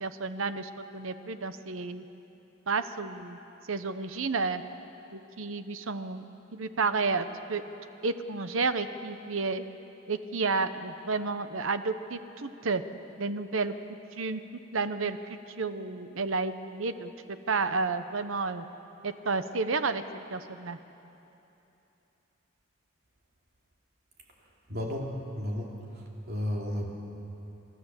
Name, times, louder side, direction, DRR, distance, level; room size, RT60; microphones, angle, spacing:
voice 1, 0.0-2.0 2.7-3.4 3.7-4.6 5.1-6.3 6.5-7.6 8.0-9.6 10.1-12.8 13.2-13.7 14.2-14.4 14.7-18.7 19.0-20.0 20.3-20.8, right 4 dB, 70° right, 11 dB, 0.9 m, -31 dB
voice 2, 24.7-25.1 25.4-25.7 26.3-26.9, left 1 dB, 50° right, -1 dB, 2.9 m, -32 dB
29.5 x 13.0 x 7.4 m, 3.0 s
head